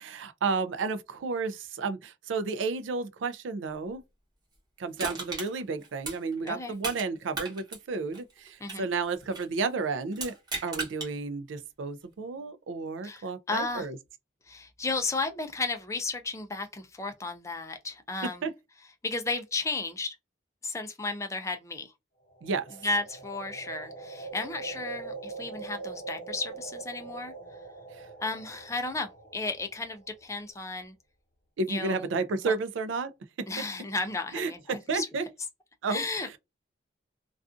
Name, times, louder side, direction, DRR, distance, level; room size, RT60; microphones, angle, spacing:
voice 1, 0.0-4.0 4.8-10.3 10.6-14.0 18.4-18.5 22.4-22.6 31.6-33.1 33.4-33.5 34.3-35.2 35.8-36.0, right 4 dB, 85° right, 0.4 m, -32 dB
Crushing, 5.0-7.1 7.3-9.6 10.1-11.1 11.6-11.7, right 3 dB, 20° right, 1.0 m, -37 dB
voice 2, 13.0-13.9 14.5-18.5 19.0-20.2 20.6-21.9 22.8-27.3 28.2-30.9 31.7-32.1 32.4-32.5 33.5-35.1 35.9-36.4, left 3 dB, 15° left, 0.4 m, -34 dB
sound 1, 22.3-30.3, right 4 dB, 50° left, 0.9 m, -43 dB
2.4 x 2.4 x 2.4 m
head